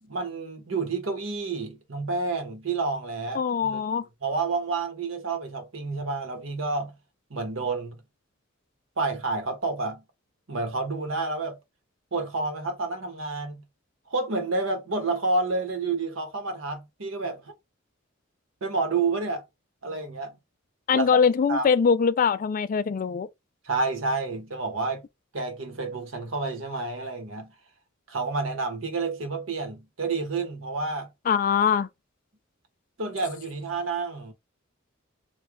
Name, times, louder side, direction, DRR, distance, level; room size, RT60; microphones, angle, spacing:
voice 1, 0.0-3.8 4.2-6.9 7.3-8.0 9.0-10.0 10.5-11.6 12.1-13.6 14.1-17.5 18.6-19.4 19.8-20.4 20.9-21.2 21.5-21.7 23.6-25.0 25.3-27.5 28.1-31.1 33.0-34.3, right 3 dB, 85° right, 1.1 m, -29 dB
voice 2, 3.3-4.0 20.9-23.3 31.3-31.9, left 6 dB, 40° left, 0.3 m, -22 dB
3.2 x 2.2 x 3.5 m
head